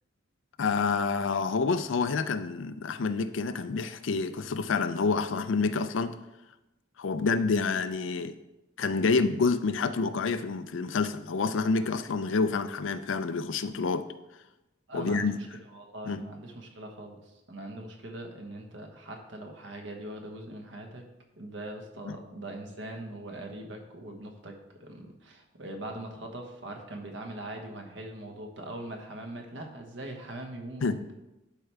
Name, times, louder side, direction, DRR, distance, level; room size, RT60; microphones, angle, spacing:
voice 1, 0.6-6.1 7.0-8.3 8.8-14.1 14.9-15.3 16.0-16.3 22.1-22.2 30.8-31.1, left 4 dB, 75° left, 12 dB, 0.5 m, -28 dB
voice 2, 14.9-15.5 15.7-21.0 21.4-31.1, right 1 dB, 65° right, 3 dB, 1.2 m, -41 dB
11.5 x 4.5 x 3.4 m, 0.96 s
head